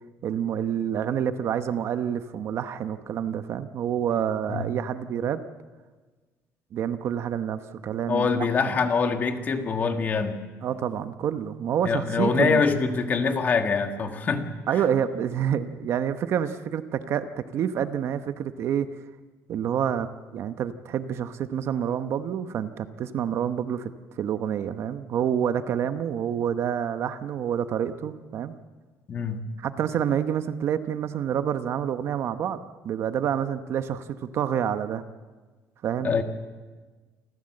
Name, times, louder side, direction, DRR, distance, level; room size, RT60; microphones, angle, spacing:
voice 1, 0.2-5.4 6.7-8.3 8.7-8.8 10.6-12.6 14.7-18.9 19.5-20.1 20.3-28.6 29.6-32.6 32.8-35.0 35.8-36.1, right 9 dB, 45° right, 10 dB, 0.9 m, -28 dB
voice 2, 8.1-10.4 11.8-14.5 29.1-29.5 36.0-36.2, left 5 dB, 30° left, 6 dB, 1.6 m, -24 dB
28.0 x 14.5 x 7.7 m, 1.4 s
cardioid pair, 175°, 6 cm